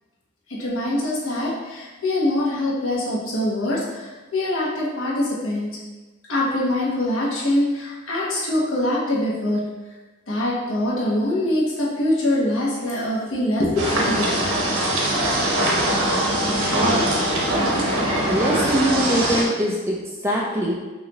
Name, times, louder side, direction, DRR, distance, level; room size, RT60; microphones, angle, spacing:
voice 1, 0.5-5.7 6.3-9.6 10.3-14.4, left 1 dB, 75° left, -5 dB, 1.2 m, -23 dB
sound 1, 13.8-19.4, right 1 dB, 90° right, 0.9 m, -21 dB
voice 2, 18.2-20.7, right 1 dB, 10° right, -3 dB, 0.5 m, -22 dB
5.6 x 2.7 x 2.9 m, 1.2 s
head